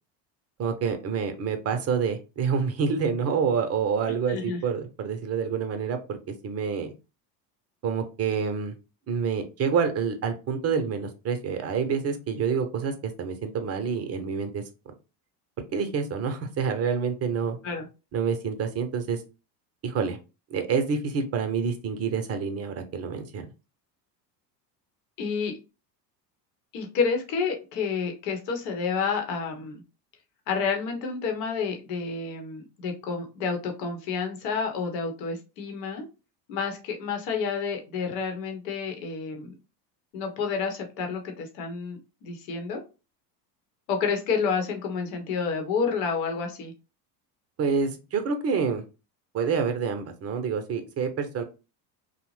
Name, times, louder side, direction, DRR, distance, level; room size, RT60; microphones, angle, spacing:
voice 1, 0.6-6.9 7.8-8.7 9.1-14.9 15.7-17.6 18.1-19.2 19.8-20.2 20.5-23.4 47.6-48.8 49.3-51.4, right 6 dB, 30° right, 7 dB, 0.6 m, -27 dB
voice 2, 4.1-4.6 17.6-17.9 25.2-25.5 26.7-29.8 30.5-36.0 36.5-39.5 40.1-42.8 43.9-46.7, left 5 dB, 80° left, 4 dB, 1.0 m, -29 dB
2.7 x 2.1 x 3.0 m, 0.30 s
supercardioid pair, 95°, 49 cm